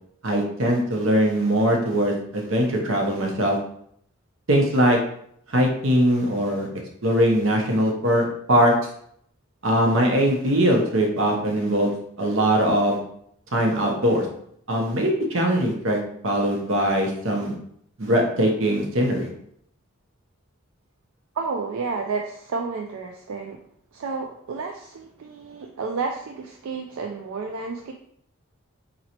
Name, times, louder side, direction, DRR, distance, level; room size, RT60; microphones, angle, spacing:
voice 1, 0.2-3.6 4.5-5.0 5.5-6.7 7.0-8.7 9.6-13.0 13.5-14.3 14.7-17.5 18.0-19.3, equal, 70° right, 1 dB, 0.9 m, -21 dB
voice 2, 21.4-23.6 23.9-27.9, right 4 dB, 85° right, 2 dB, 0.4 m, -31 dB
4.0 x 3.0 x 2.9 m, 0.68 s
head